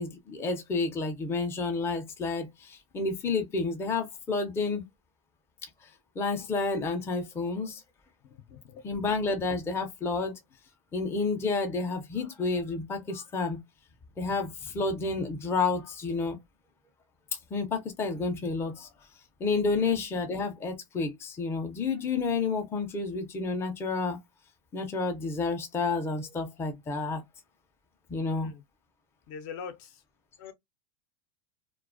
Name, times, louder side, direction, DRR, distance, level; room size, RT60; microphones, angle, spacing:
voice 1, 0.0-4.9 5.8-7.8 8.8-10.4 10.9-13.6 14.2-16.4 17.5-18.9 19.4-24.2 24.7-27.2 28.1-28.5, left 4 dB, 15° left, 0.5 m, -30 dB
voice 2, 8.5-8.8 19.8-19.9 28.2-28.6 29.3-30.0 30.4-30.5, left 6 dB, 55° left, 0.6 m, -43 dB
2.3 x 2.2 x 2.4 m
supercardioid pair, 140°, 18 cm